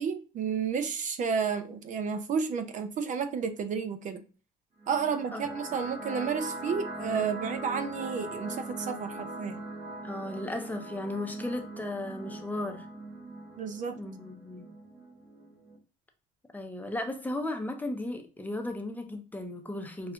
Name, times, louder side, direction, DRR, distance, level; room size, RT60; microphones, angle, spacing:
voice 1, 0.0-4.2 4.9-9.6 13.6-14.0, right 6 dB, 50° right, 0.5 m, -31 dB
sound 1, 4.8-15.8, right 2 dB, 30° right, 1.3 m, -41 dB
voice 2, 10.0-12.9 13.9-14.7 16.5-20.1, left 1 dB, 10° left, 0.7 m, -35 dB
5.9 x 2.4 x 2.3 m
cardioid pair, 110°, 17 cm